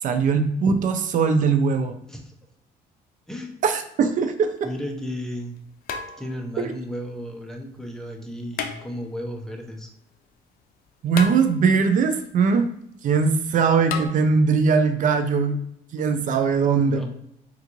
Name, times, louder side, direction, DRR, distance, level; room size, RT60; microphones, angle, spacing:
voice 1, 0.0-1.9 3.6-4.5 6.6-6.7 11.0-12.7 13.0-15.6 15.9-17.1, right 5 dB, 50° right, 7 dB, 0.4 m, -20 dB
sound 1, 4.5-4.6 5.9-6.6 8.5-9.3 11.1-11.9 13.9-14.1, left 6 dB, 60° left, 0.5 m, -33 dB
voice 2, 4.6-5.6 6.2-9.9 16.9-17.1, equal, 5° left, 2 dB, 0.6 m, -34 dB
3.5 x 2.5 x 3.0 m, 0.76 s
cardioid pair, 110°, 17 cm